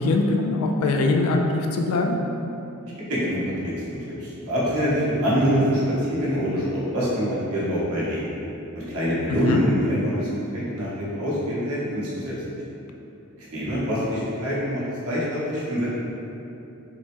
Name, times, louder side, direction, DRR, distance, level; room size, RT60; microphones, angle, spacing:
voice 1, 0.0-2.2 9.3-9.6, left 2 dB, 85° left, 3 dB, 0.3 m, -22 dB
voice 2, 3.1-3.4 4.2-5.8 6.1-8.3 8.7-10.3 10.5-12.3 13.5-16.0, equal, 85° right, -8 dB, 0.9 m, -25 dB
3.5 x 2.1 x 2.9 m, 2.9 s
head